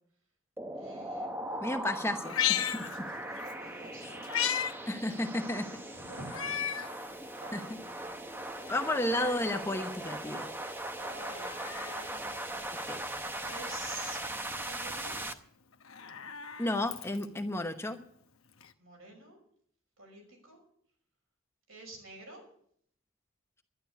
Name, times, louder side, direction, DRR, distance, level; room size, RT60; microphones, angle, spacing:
sound 1, 0.6-15.3, right 1 dB, 10° right, 0.8 m, -39 dB
voice 1, 0.7-1.3 3.2-4.4 5.8-8.3 11.0-12.8 13.4-14.2 14.6-15.2 18.8-19.4 20.0-20.6 21.7-22.4, right 2 dB, 80° right, 2 dB, 5.8 m, -49 dB
voice 2, 1.6-2.9 4.0-4.1 4.9-5.7 7.5-7.8 8.7-10.5 12.9-13.0 16.6-18.0, left 1 dB, 10° left, 6 dB, 0.9 m, -32 dB
Meow, 2.2-3.5 3.9-4.7 5.1-5.2 6.3-6.9 7.5-7.6 8.5-9.5 11.1-12.1 13.4-14.2 15.7-17.4 18.6-18.7, left 9 dB, 80° left, 0.9 m, -35 dB
11.5 x 11.0 x 7.0 m, 0.64 s
head